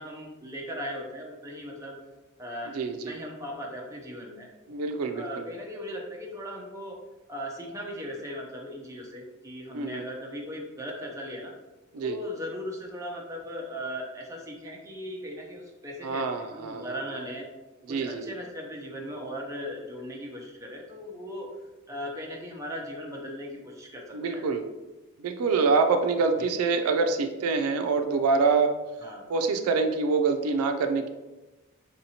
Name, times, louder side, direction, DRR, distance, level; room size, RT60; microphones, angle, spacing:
voice 1, 0.0-2.0 2.4-2.8 3.0-4.5 5.1-7.0 7.3-11.5 12.0-17.5 17.9-21.5 21.9-24.5 26.4-26.5 29.0-29.2, equal, 15° right, -1 dB, 0.5 m, -38 dB
voice 2, 2.7-3.1 4.7-5.5 9.7-10.0 11.9-12.2 16.0-17.0 17.9-18.3 24.1-24.7 25.2-28.8 29.3-31.1, right 4 dB, 85° right, 6 dB, 0.4 m, -26 dB
3.7 x 2.8 x 2.8 m, 1.1 s
head